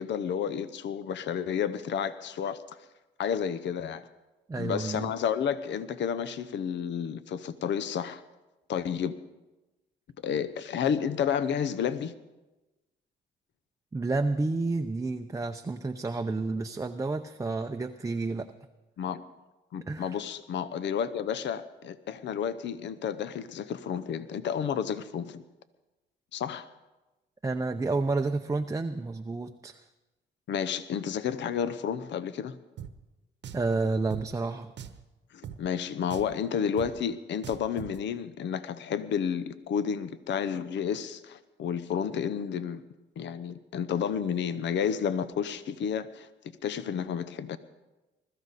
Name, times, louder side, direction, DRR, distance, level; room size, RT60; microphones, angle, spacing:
voice 1, 0.0-2.8 3.2-4.1 4.6-8.2 8.7-9.1 10.2-12.1 19.0-19.2 19.7-25.4 26.3-26.7 30.5-32.6 35.3-42.8 43.2-46.3 46.6-47.6, left 8 dB, 65° left, 14 dB, 0.8 m, -31 dB
voice 2, 4.5-5.1 13.9-18.5 19.9-20.2 27.4-29.8 33.5-34.7, right 3 dB, 15° right, 5 dB, 0.6 m, -30 dB
Drum, 32.8-32.9 33.4-33.7 34.1-34.2 34.8-35.0 35.4-35.6 36.1-36.4 36.8-36.9 37.4-38.0, right 8 dB, 60° right, 1.0 m, -41 dB
21.0 x 13.5 x 4.1 m, 1.1 s
cardioid pair, 90°, 20 cm